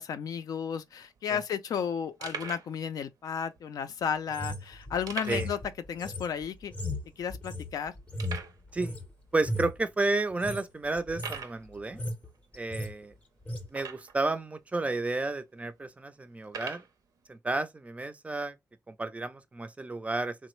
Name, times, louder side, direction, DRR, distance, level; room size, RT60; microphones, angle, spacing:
voice 1, 0.0-5.6 5.9-6.7 7.2-7.9, left 7 dB, 75° left, 0.4 m, -33 dB
sound 1, 0.7-0.8 1.0-1.2 1.7-1.8 2.2-2.7 3.5-3.6 5.1-5.6 5.9-6.0 6.5-6.6 7.2-7.3 8.2-8.6 9.4-9.5 10.1-10.2 11.1-11.6 13.7-14.3 15.0-15.1 16.4-16.9, right 6 dB, 75° right, 0.6 m, -40 dB
sound 2, 4.3-9.1 9.4-9.8 10.3-10.6 11.0-11.4 11.7-12.3 12.5-12.9 13.5-13.7, left 1 dB, 20° left, 0.6 m, -36 dB
voice 2, 9.3-12.0 12.6-13.1 13.7-16.8 17.3-18.5 19.0-20.4, right 2 dB, 20° right, 0.4 m, -31 dB
3.2 x 2.0 x 3.0 m
cardioid pair, 100°, 6 cm